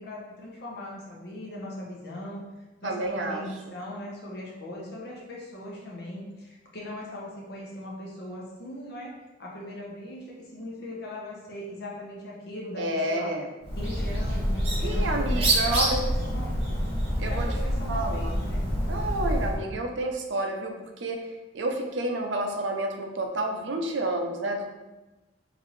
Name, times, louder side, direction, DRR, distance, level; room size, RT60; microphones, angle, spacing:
voice 1, 0.0-2.4 2.8-9.1 9.4-13.3 13.8-16.6 17.3-18.6, left 1 dB, 60° left, -3 dB, 1.1 m, -39 dB
voice 2, 2.8-3.4 12.8-13.5 14.8-16.0 17.2-17.5 17.9-18.4 18.9-21.3 21.5-24.6, right 1 dB, 80° right, 3 dB, 0.6 m, -29 dB
Bird, 13.6-19.6, equal, 30° right, 1.3 m, -27 dB
3.9 x 3.6 x 3.2 m, 1.1 s
head